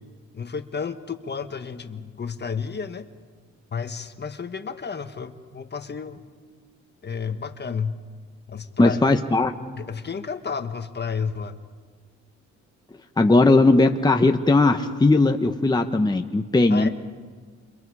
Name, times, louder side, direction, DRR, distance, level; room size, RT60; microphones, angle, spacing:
voice 1, 0.3-3.1 3.7-6.2 7.0-8.0 8.5-9.0 9.7-11.6 16.7-16.9, left 6 dB, 35° left, 8 dB, 1.4 m, -31 dB
voice 2, 8.8-9.5 13.2-16.9, left 2 dB, 15° left, 5 dB, 1.1 m, -18 dB
29.0 x 28.0 x 4.9 m, 1.5 s
cardioid pair, 90°, 30 cm